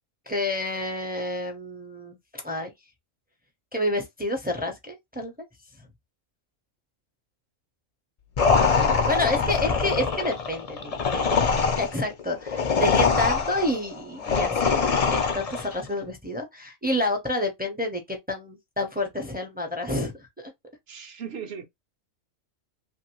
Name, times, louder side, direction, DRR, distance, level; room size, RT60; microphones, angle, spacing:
voice 1, 0.3-2.7 3.7-5.3 9.1-20.5, left 1 dB, 15° right, 0.3 m, -29 dB
sound 1, 8.4-15.8, left 5 dB, 75° left, 0.3 m, -23 dB
voice 2, 8.5-9.5 20.9-21.7, right 6 dB, 60° right, 0.8 m, -38 dB
2.9 x 2.6 x 2.9 m
omnidirectional pair, 1.4 m